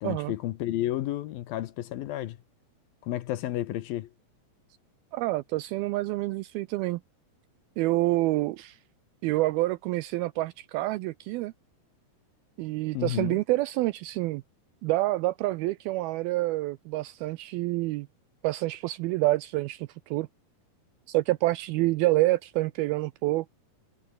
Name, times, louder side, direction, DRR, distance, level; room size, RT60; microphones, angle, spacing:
voice 1, 0.0-2.4 3.0-4.1 12.9-13.4, left 14 dB, 70° left, 2.5 m, -31 dB
voice 2, 5.1-7.0 7.8-8.8 9.2-11.5 12.6-14.4 14.8-18.1 18.4-20.3 21.1-23.5, right 18 dB, 85° right, 2.2 m, -27 dB
omnidirectional pair, 4.9 m